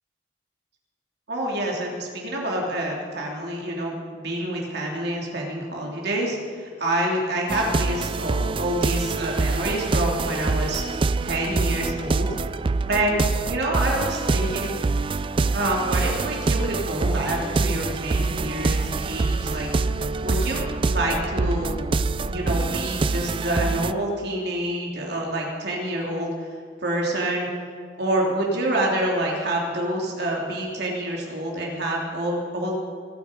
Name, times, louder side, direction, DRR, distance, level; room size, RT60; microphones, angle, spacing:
voice 1, 1.3-10.8 11.2-12.4 12.9-14.7 15.5-19.7 20.2-21.8 22.2-26.5 26.8-27.5 28.0-32.7, right 1 dB, 60° right, -2 dB, 3.1 m, -27 dB
sound 1, 7.5-23.9, right 3 dB, 30° right, 0.3 m, -25 dB
25.5 x 9.4 x 5.2 m, 2.1 s
head